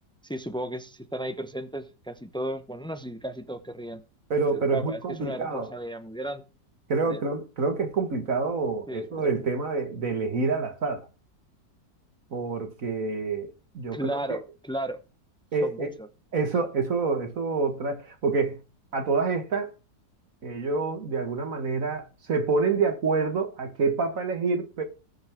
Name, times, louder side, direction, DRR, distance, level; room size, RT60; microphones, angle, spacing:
voice 1, 0.2-4.0 4.5-6.4 7.1-7.2 8.9-9.1 9.3-9.5 13.9-15.0 15.6-15.9, right 1 dB, 5° left, 0.4 m, -34 dB
voice 2, 4.3-5.7 6.9-11.1 12.3-14.4 15.5-15.9 16.3-18.6 18.9-19.7 20.4-24.8, right 4 dB, 50° right, 1.9 m, -27 dB
19.0 x 6.6 x 3.6 m
omnidirectional pair, 1.9 m